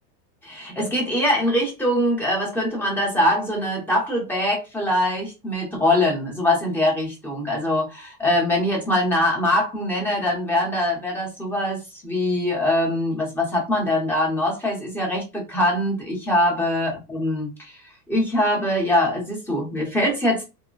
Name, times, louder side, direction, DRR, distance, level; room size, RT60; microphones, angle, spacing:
voice 1, 0.4-17.8 18.1-20.4, left 1 dB, 5° left, 0.9 m, -23 dB
3.5 x 2.2 x 2.3 m
supercardioid pair, 150°, 47 cm